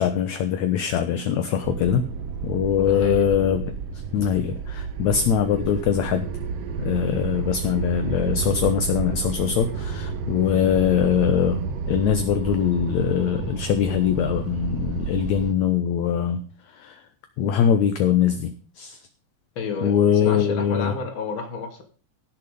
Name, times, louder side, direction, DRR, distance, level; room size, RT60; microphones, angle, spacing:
voice 1, 0.0-2.0 2.4-3.6 4.1-6.3 6.8-16.4 16.8-16.9 17.4-18.5 18.8-19.0 19.8-20.9, left 8 dB, 65° left, 8 dB, 2.1 m, -22 dB
sound 1, 1.6-15.5, right 5 dB, 65° right, 1.6 m, -30 dB
voice 2, 2.8-3.2 19.6-21.8, left 4 dB, 40° left, 5 dB, 2.8 m, -31 dB
16.5 x 7.5 x 5.3 m, 0.40 s
omnidirectional pair, 3.9 m